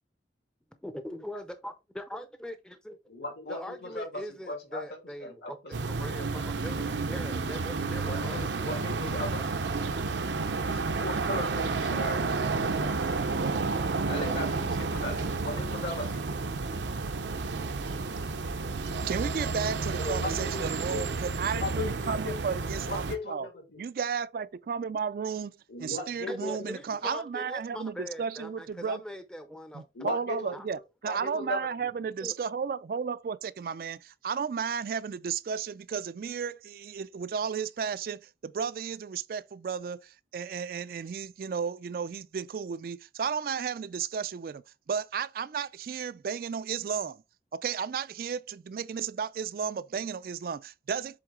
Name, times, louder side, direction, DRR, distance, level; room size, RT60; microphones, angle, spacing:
voice 1, 0.8-3.0 3.5-5.6 5.9-6.7 7.0-8.4 26.3-29.8 30.5-30.6 32.2-32.3, equal, 5° left, 0.5 m, -41 dB
voice 2, 3.1-6.2 8.0-9.6 10.7-13.0 14.1-16.3 19.9-21.0 21.5-22.4 22.8-23.8 25.7-26.8 29.9-30.5 31.0-31.9, left 2 dB, 75° left, 3.0 m, -38 dB
sound 1, 5.7-23.2, right 3 dB, 85° right, 0.7 m, -31 dB
voice 3, 19.0-23.5 23.8-25.5 25.8-29.0 29.7-44.6 44.9-47.2 47.5-51.2, right 6 dB, 55° right, 0.3 m, -33 dB
7.7 x 3.6 x 3.6 m
head